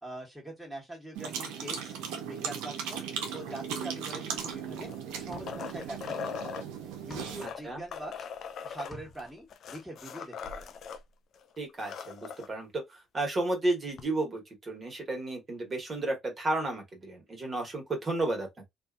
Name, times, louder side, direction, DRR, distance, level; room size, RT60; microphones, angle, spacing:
voice 1, 0.0-1.9 2.3-3.0 3.3-6.1 6.4-6.7 7.0-8.3 8.6-10.8, right 1 dB, 5° right, 1.4 m, -43 dB
sound 1, 1.2-7.5, right 7 dB, 90° right, 0.6 m, -37 dB
sound 2, 4.5-4.6 5.2-6.1 6.4-8.5 8.7-9.5, left 2 dB, 30° left, 1.2 m, -50 dB
sound 3, 4.7-6.7 7.3-11.0 11.3-11.4 11.7-12.5 14.0-14.1, left 6 dB, 65° left, 0.4 m, -40 dB
voice 2, 11.6-18.7, right 2 dB, 35° right, 1.3 m, -32 dB
2.6 x 2.4 x 2.4 m
supercardioid pair, 75°, 0 cm